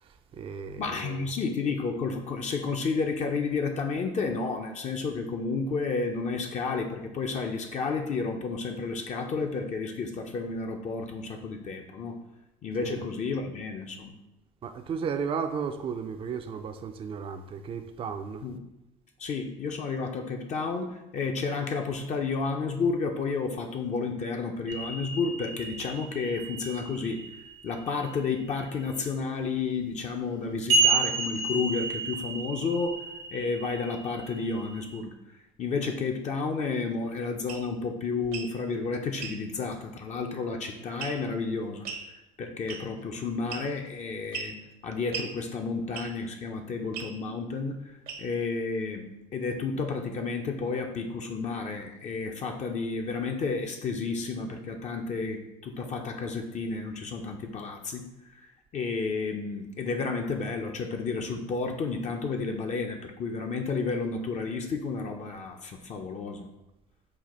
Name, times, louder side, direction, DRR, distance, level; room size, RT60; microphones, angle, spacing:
voice 1, 0.0-1.3 12.8-13.1 14.6-18.5, right 6 dB, 35° right, 0.4 m, -34 dB
voice 2, 0.8-12.2 12.6-14.1 18.4-18.6 19.2-27.2 27.6-33.0 33.3-35.1 35.6-41.9 42.4-44.6 44.8-47.8 48.2-58.1 58.4-58.5 58.7-66.5, left 4 dB, 45° left, 0.6 m, -31 dB
sound 1, 24.7-27.8 30.7-34.9, right 3 dB, 90° right, 1.0 m, -31 dB
sound 2, 37.5-37.7 38.2-38.5 39.2-39.4 41.0-41.3 41.8-42.1 42.7-43.0 43.5-43.9 44.3-44.6 45.1-45.3 45.9-46.2 46.9-47.1 48.1-48.4, right 6 dB, 65° right, 0.8 m, -37 dB
4.1 x 2.3 x 4.2 m
supercardioid pair, 75°, 16 cm